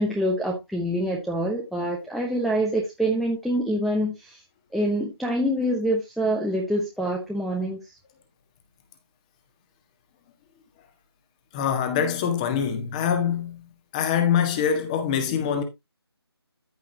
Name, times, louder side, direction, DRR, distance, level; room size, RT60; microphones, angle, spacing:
voice 1, 0.0-4.4 4.7-7.9, equal, ahead, 0.9 m, -26 dB
voice 2, 11.5-15.6, left 8 dB, 15° left, 1.6 m, -24 dB
14.0 x 5.8 x 2.9 m
figure-of-eight pair, 160°, 14 cm